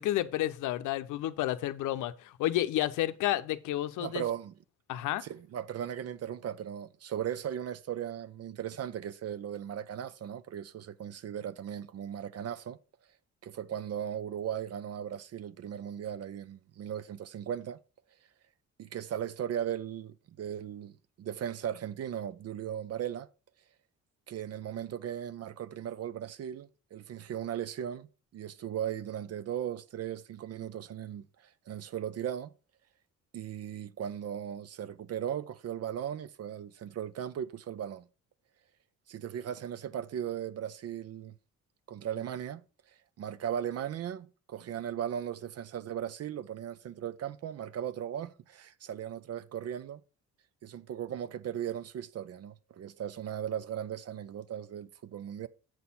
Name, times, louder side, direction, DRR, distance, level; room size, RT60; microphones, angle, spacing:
voice 1, 0.0-4.2 4.9-5.2, left 14 dB, 90° left, 0.6 m, -31 dB
voice 2, 4.0-4.5 5.2-12.8 13.4-17.8 18.8-20.9 21.2-23.3 24.3-28.1 28.3-32.5 33.3-38.0 39.1-41.4 41.9-42.6 43.2-50.0 50.6-55.5, right 9 dB, 55° right, 0.5 m, -37 dB
8.0 x 4.3 x 5.4 m
cardioid pair, 90°, 30 cm